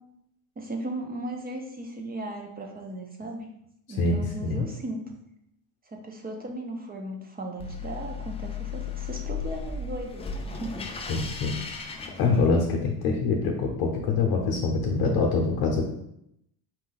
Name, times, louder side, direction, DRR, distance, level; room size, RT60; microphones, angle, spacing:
voice 1, 0.6-3.5 3.9-5.0 5.9-10.9, right 1 dB, 20° right, 2 dB, 0.6 m, -36 dB
voice 2, 4.0-4.7 11.1-11.5 12.2-15.8, left 4 dB, 55° left, 1 dB, 0.8 m, -25 dB
sound 1, 7.6-12.9, left 5 dB, 15° left, 0.3 m, -36 dB
4.3 x 2.5 x 3.9 m, 0.77 s
supercardioid pair, 100°, 43 cm